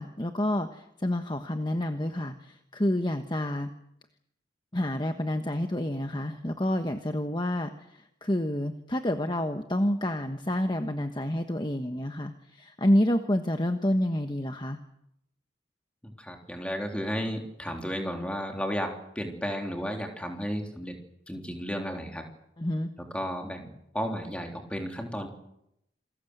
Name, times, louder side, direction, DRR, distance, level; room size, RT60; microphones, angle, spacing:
voice 1, 0.0-3.7 4.7-7.7 8.2-14.8 22.6-22.9, left 1 dB, 25° left, 6 dB, 1.2 m, -28 dB
voice 2, 16.0-20.9 21.3-22.3 23.1-25.3, equal, 5° left, 3 dB, 3.5 m, -33 dB
28.0 x 21.0 x 8.1 m, 0.81 s
head